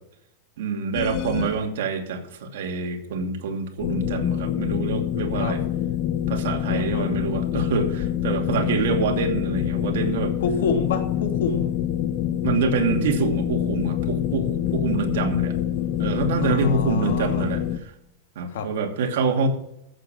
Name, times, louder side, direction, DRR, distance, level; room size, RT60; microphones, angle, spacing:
voice 1, 0.6-5.6 6.3-10.3 12.4-15.6 16.0-17.9 18.3-19.5, right 4 dB, 70° right, 3 dB, 2.7 m, -26 dB
sound 1, 0.9-1.7 3.8-17.8, left 11 dB, 40° left, 1.0 m, -26 dB
voice 2, 6.7-7.1 10.4-11.8 16.4-17.5 18.5-18.7, left 5 dB, 80° left, 5 dB, 2.7 m, -27 dB
14.5 x 7.5 x 6.3 m, 0.79 s
supercardioid pair, 155°, 0 cm